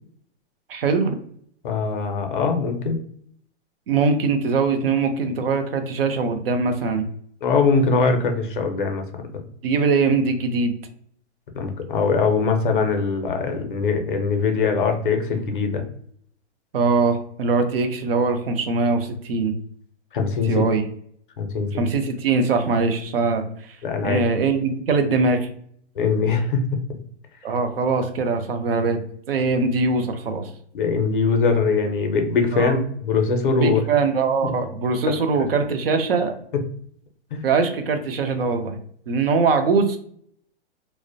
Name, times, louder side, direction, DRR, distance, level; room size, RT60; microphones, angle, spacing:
voice 1, 0.7-1.2 3.9-7.1 9.6-10.7 16.7-19.6 20.4-20.8 21.7-23.4 24.0-25.5 27.4-29.0 29.3-30.5 32.5-32.7 33.5-36.3 37.4-38.8 39.1-40.0, right 4 dB, 55° right, 7 dB, 0.5 m, -22 dB
voice 2, 1.6-3.0 7.4-9.0 11.5-15.8 20.1-20.6 21.4-21.7 23.8-24.2 26.0-26.6 30.7-33.8 34.4-34.5 35.1-35.2 37.3-37.4, left 4 dB, 45° left, 4 dB, 0.5 m, -22 dB
2.4 x 2.1 x 2.5 m, 0.63 s
hypercardioid pair, 175°, 35 cm